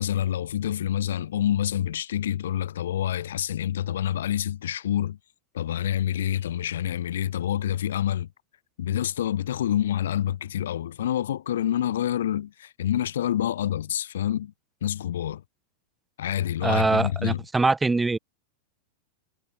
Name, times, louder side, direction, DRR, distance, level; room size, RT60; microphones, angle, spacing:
voice 1, 0.0-5.2 5.5-8.3 8.8-14.5 14.8-15.4 16.2-17.4, left 11 dB, 60° left, 0.4 m, -27 dB
voice 2, 16.6-18.2, right 3 dB, 10° right, 0.8 m, -23 dB
figure-of-eight pair, 90°, 0 cm